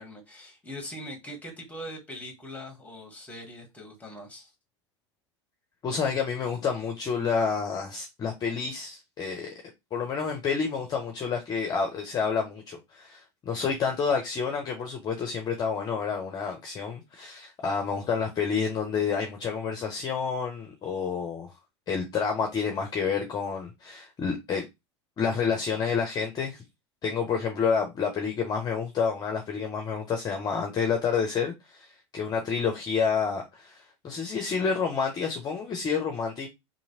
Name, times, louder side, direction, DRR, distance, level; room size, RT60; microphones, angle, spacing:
voice 1, 0.0-4.5, equal, 10° left, 1.3 m, -41 dB
voice 2, 5.8-9.5 9.9-21.5 21.9-24.6 25.2-26.6 27.0-36.5, left 6 dB, 25° left, 0.6 m, -29 dB
2.8 x 2.6 x 2.8 m
figure-of-eight pair, 75°, 15 cm